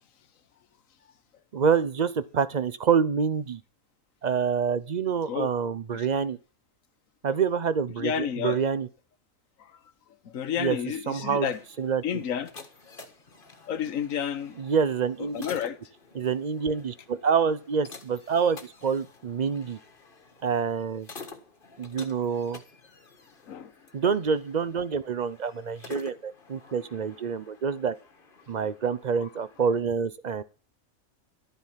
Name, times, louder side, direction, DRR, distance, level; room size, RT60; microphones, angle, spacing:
voice 1, 1.5-3.6 4.2-6.4 7.2-8.9 10.6-10.8 11.1-11.5 11.8-12.0 14.6-15.4 16.2-19.8 20.4-21.1 21.8-22.6 23.9-28.0 28.5-30.4, right 6 dB, 45° right, 0.6 m, -27 dB
voice 2, 8.0-8.6 9.6-9.8 10.2-11.6 12.0-12.5 13.7-14.6 15.3-15.8 23.5-23.7 29.2-29.3, left 9 dB, 70° left, 1.4 m, -30 dB
sound 1, 11.3-29.8, left 4 dB, 40° left, 1.6 m, -49 dB
12.5 x 9.3 x 5.7 m
omnidirectional pair, 1.5 m